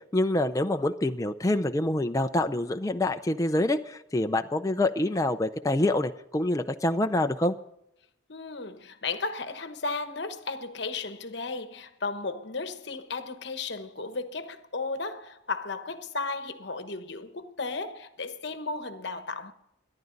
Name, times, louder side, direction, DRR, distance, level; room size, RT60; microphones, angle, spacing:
voice 1, 0.1-7.6, left 1 dB, 15° left, 0.5 m, -26 dB
voice 2, 8.3-19.5, left 3 dB, 60° left, 1.1 m, -34 dB
23.5 x 11.0 x 4.0 m
head